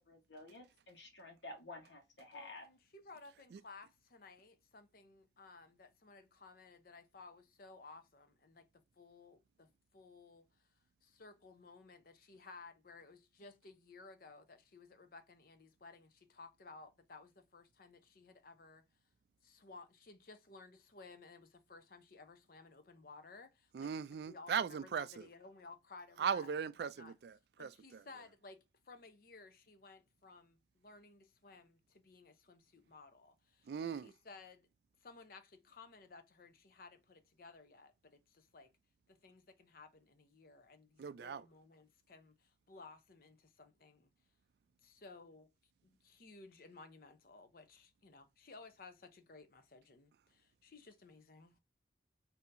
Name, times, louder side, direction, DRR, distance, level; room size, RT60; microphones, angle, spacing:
voice 1, 0.0-2.7, left 2 dB, 80° left, 1.2 m, -52 dB
voice 2, 2.3-10.5 11.0-18.8 19.4-23.9 24.3-26.5 26.8-27.1 27.6-34.7 35.0-38.7 39.1-44.1 44.8-45.5 45.8-51.6, left 3 dB, 55° left, 0.7 m, -57 dB
voice 3, 23.7-25.3 26.2-28.0 33.7-34.1 41.0-41.4, right 7 dB, 60° right, 0.3 m, -39 dB
4.1 x 2.7 x 2.5 m
head